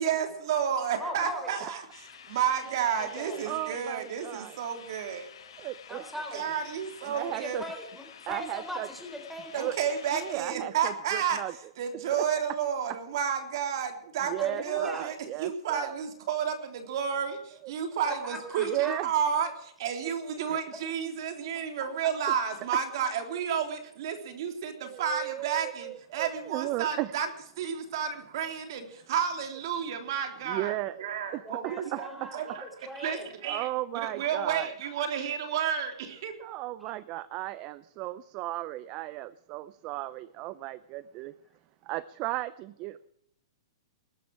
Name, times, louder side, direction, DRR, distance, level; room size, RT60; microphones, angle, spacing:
voice 1, 0.0-1.8 2.3-5.3 6.3-7.6 9.5-11.4 11.8-14.3 14.6-15.1 15.4-27.3 27.6-32.6 33.0-33.7 33.9-36.3, right 8 dB, 55° right, 6 dB, 3.3 m, -31 dB
voice 2, 1.0-1.8 2.7-3.5 5.9-6.6 7.3-9.7 14.4-15.1 18.1-19.0 21.8-21.9 22.7-22.8 31.4-33.3 36.8-36.9, equal, ahead, 5 dB, 3.9 m, -40 dB
sound 1, 1.9-10.3, left 8 dB, 80° left, 4.9 m, -50 dB
voice 3, 3.5-4.6 5.6-6.0 7.0-7.6 8.3-8.9 9.6-9.8 10.1-11.5 12.2-12.3 14.2-15.9 17.6-17.7 18.7-19.1 20.5-20.6 22.3-22.4 24.8-27.1 30.4-32.3 33.4-34.7 36.4-41.3 41.8-43.1, right 16 dB, 30° right, 18 dB, 0.5 m, -35 dB
20.0 x 12.5 x 4.7 m, 0.71 s
hypercardioid pair, 160°, 3 cm